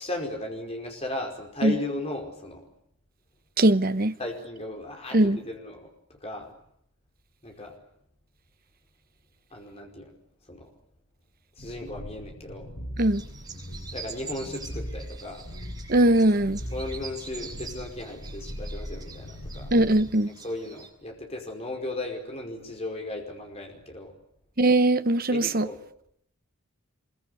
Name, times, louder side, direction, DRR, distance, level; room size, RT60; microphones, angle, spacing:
voice 1, 0.0-2.6 4.2-6.5 7.4-7.7 9.5-10.1 10.5-10.7 11.6-12.7 13.9-15.5 16.7-19.7 20.4-24.1 25.3-25.8, left 1 dB, 30° left, 5.0 m, -36 dB
voice 2, 3.6-4.1 5.1-5.4 13.0-13.2 15.9-16.6 19.7-20.3 24.6-25.7, right 1 dB, 40° right, 1.0 m, -20 dB
sound 1, 11.6-20.1, equal, 85° left, 6.0 m, -39 dB
sound 2, 13.0-20.9, right 5 dB, 15° right, 7.4 m, -45 dB
25.0 x 23.0 x 8.4 m
head